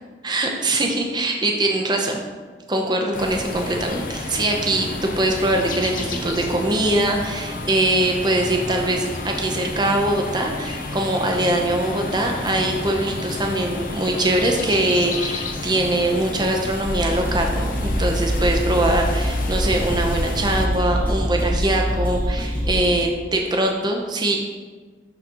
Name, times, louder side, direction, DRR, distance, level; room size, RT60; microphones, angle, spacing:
voice 1, 0.2-2.2 2.7-24.4, right 1 dB, 20° right, 1 dB, 0.7 m, -22 dB
sound 1, 3.1-20.7, left 2 dB, 45° left, 0.6 m, -31 dB
sound 2, 4.5-23.1, equal, 60° right, 1.4 m, -38 dB
sound 3, 16.8-22.8, equal, 10° left, 1.0 m, -24 dB
11.5 x 3.9 x 2.9 m, 1.5 s
head